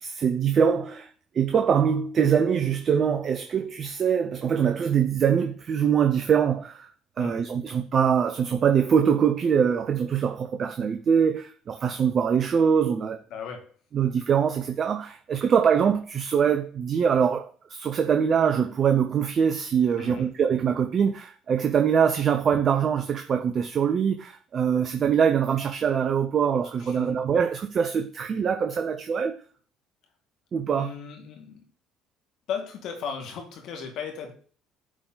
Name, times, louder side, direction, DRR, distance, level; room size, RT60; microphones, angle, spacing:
voice 1, 0.0-6.9 7.2-13.2 13.9-29.4 30.5-30.9, right 7 dB, 45° right, 0.7 m, -23 dB
voice 2, 7.2-7.5 13.3-13.7 20.0-20.3 26.8-27.2 30.7-31.6 32.5-34.3, left 6 dB, 65° left, 2.1 m, -36 dB
9.6 x 3.9 x 4.0 m
hypercardioid pair, 60°, 0 cm